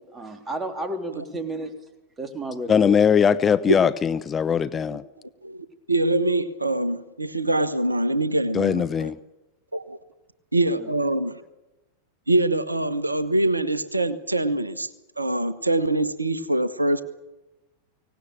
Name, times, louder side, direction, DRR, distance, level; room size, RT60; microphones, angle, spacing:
voice 1, 0.1-1.7 2.2-3.0 3.3-3.8 10.8-10.9, right 1 dB, 15° right, 6 dB, 3.5 m, -33 dB
voice 2, 2.7-5.0 8.5-9.2, left 7 dB, 20° left, 13 dB, 0.7 m, -20 dB
voice 3, 5.4-9.1 9.7-10.0 10.5-11.4 12.3-14.9 15.2-17.0, right 2 dB, 85° right, 15 dB, 1.2 m, -24 dB
24.5 x 18.0 x 8.8 m, 1.0 s
figure-of-eight pair, 90°, 0 cm